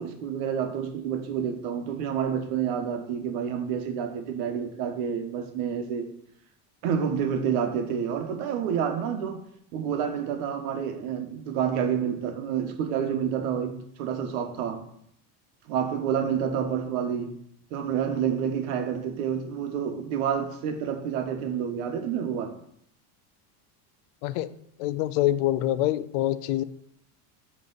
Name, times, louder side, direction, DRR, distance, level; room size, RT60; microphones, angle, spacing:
voice 1, 0.0-6.1 6.8-9.4 9.7-14.8 15.7-17.4 17.7-22.5, right 8 dB, 65° right, 1.1 m, -29 dB
voice 2, 24.2-26.6, left 14 dB, 75° left, 0.6 m, -26 dB
9.3 x 3.2 x 3.9 m
cardioid pair, 180°, 47 cm